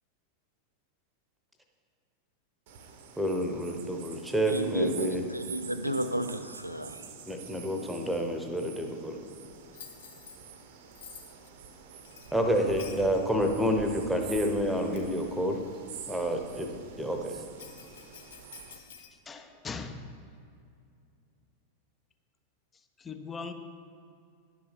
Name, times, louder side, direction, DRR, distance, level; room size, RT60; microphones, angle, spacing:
sound 1, 2.7-18.8, right 7 dB, 55° right, 0.7 m, -47 dB
voice 1, 3.2-5.2 7.0-9.2 12.3-15.6 16.1-16.7 17.0-17.3, equal, ahead, 3 dB, 0.9 m, -29 dB
voice 2, 4.5-7.0, right 1 dB, 90° right, 9 dB, 0.4 m, -32 dB
Bell, 9.7-10.4 11.0-11.5 12.0-13.1 14.0-14.1 14.7-15.2 17.6-19.1, left 7 dB, 60° left, 0.7 m, -50 dB
voice 3, 19.3-20.1 23.0-23.5, left 4 dB, 20° left, 8 dB, 0.5 m, -39 dB
11.0 x 5.7 x 4.2 m, 2.4 s
figure-of-eight pair, 90°, 0 cm